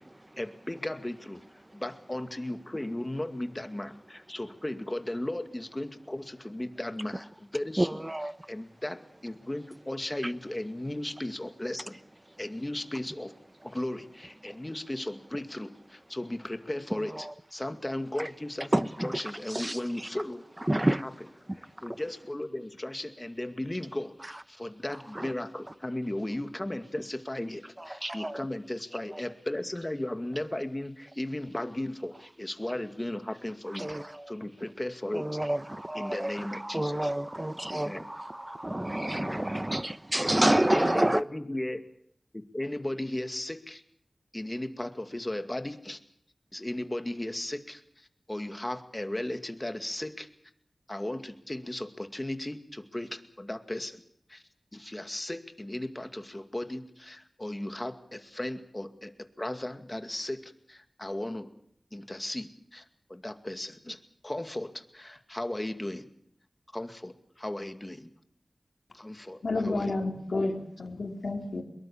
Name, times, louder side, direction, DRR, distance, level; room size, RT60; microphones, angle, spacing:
voice 1, 0.4-1.4 1.7-8.0 8.5-12.0 12.4-13.3 13.6-20.4 21.8-35.3 35.9-37.1 37.7-38.1 39.2-39.5 40.1-40.3 40.7-41.8 42.3-43.8 44.3-46.0 46.5-50.3 50.9-54.0 54.3-54.4 54.7-59.1 59.4-61.5 61.9-62.8 63.1-66.1 66.7-68.1 68.9-70.1, left 1 dB, 20° left, 2.2 m, -36 dB
voice 2, 7.8-8.5 10.2-10.3 14.5-14.6 16.9-17.3 18.2-18.3 18.7-19.2 19.5-20.1 20.7-21.0 25.1-25.3 27.8-28.4 28.9-29.2 33.7-34.3 35.1-41.2, right 1 dB, 20° right, 1.0 m, -29 dB
voice 3, 69.4-71.6, left 2 dB, 75° left, 3.7 m, -30 dB
24.0 x 22.0 x 7.3 m
wide cardioid pair, 65°, 0 cm